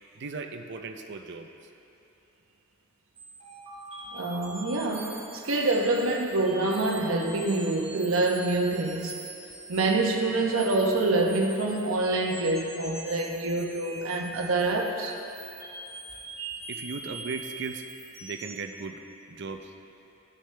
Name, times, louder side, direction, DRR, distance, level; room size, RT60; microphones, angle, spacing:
voice 1, 0.2-1.5 16.7-17.9 18.2-19.0 19.3-19.7, right 4 dB, 60° right, 5 dB, 0.6 m, -37 dB
sound 1, 3.2-18.6, right 3 dB, 30° right, 1.7 m, -43 dB
voice 2, 4.1-9.2 9.7-15.1, right 2 dB, 85° right, 1 dB, 1.0 m, -26 dB
15.5 x 6.5 x 3.3 m, 2.8 s
head